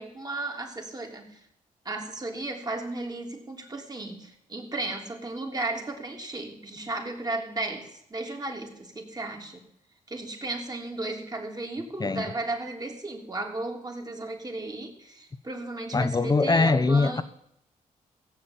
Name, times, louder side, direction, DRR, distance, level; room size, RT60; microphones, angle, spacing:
voice 1, 0.0-1.4 1.8-9.6 10.1-17.2, right 2 dB, 25° right, 3.3 m, -34 dB
voice 2, 12.0-12.3 15.9-17.2, left 3 dB, 30° left, 0.8 m, -22 dB
16.0 x 7.4 x 9.0 m
cardioid pair, 60°, 14 cm